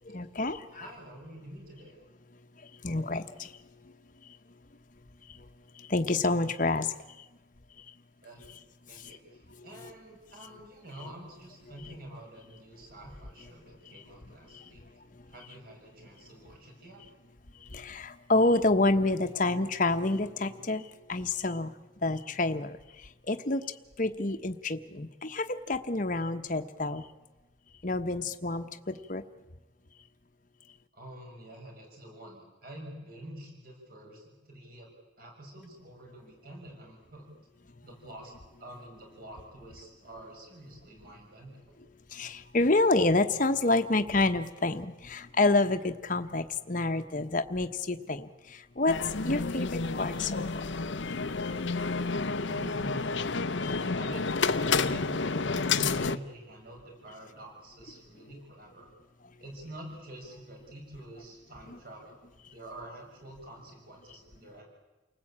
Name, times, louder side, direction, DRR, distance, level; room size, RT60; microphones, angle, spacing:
voice 1, 0.0-0.8 2.6-3.6 3.8-3.9 4.2-4.4 5.3-5.5 5.7-7.2 7.9-8.0 8.9-9.2 9.8-9.9 13.9-14.0 14.5-14.7 17.6-23.6 24.0-27.1 27.8-29.2 42.1-50.6, left 2 dB, 40° left, 7 dB, 1.1 m, -29 dB
voice 2, 0.7-2.0 8.2-8.6 8.9-14.8 15.3-17.0 30.9-34.9 35.2-37.3 37.8-38.3 38.6-41.7 52.5-53.3 53.9-58.9 59.4-62.2 62.5-64.6, right 1 dB, 45° right, 1 dB, 6.4 m, -47 dB
sound 1, 48.9-56.2, left 4 dB, 65° left, 0.8 m, -30 dB
29.5 x 19.5 x 8.8 m, 1.1 s
head